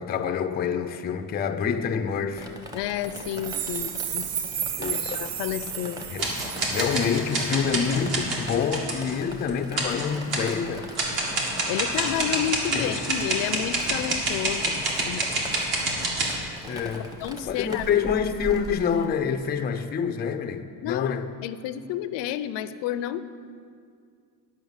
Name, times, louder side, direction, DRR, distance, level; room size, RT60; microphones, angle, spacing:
voice 1, 0.0-2.5 4.8-5.2 6.1-6.3 6.7-10.9 12.7-13.0 16.7-17.1 17.4-21.3, left 7 dB, 25° left, 0.4 m, -27 dB
Drip, 2.4-19.1, left 1 dB, 10° right, 0.9 m, -41 dB
voice 2, 2.7-4.3 4.9-6.0 11.7-15.3 17.2-17.9 20.8-21.2 21.4-23.2, left 11 dB, 75° left, 0.6 m, -30 dB
sound 1, 3.1-7.5, right 9 dB, 85° right, 0.8 m, -33 dB
sound 2, 6.2-9.1 9.5-9.6 9.8-10.5 10.9-16.4, right 2 dB, 55° right, 2.1 m, -27 dB
11.0 x 5.6 x 7.2 m
cardioid pair, 135°, 44 cm